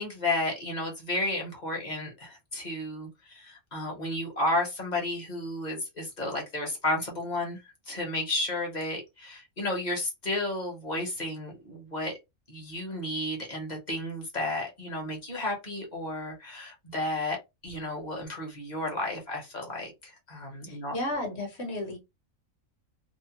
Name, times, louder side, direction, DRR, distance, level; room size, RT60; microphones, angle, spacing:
voice 1, 0.0-7.6 7.9-12.1 12.5-17.4 17.6-20.9, left 1 dB, 35° left, 1.0 m, -32 dB
voice 2, 20.7-22.0, left 1 dB, 55° left, 1.2 m, -33 dB
2.8 x 2.0 x 2.8 m
omnidirectional pair, 1.4 m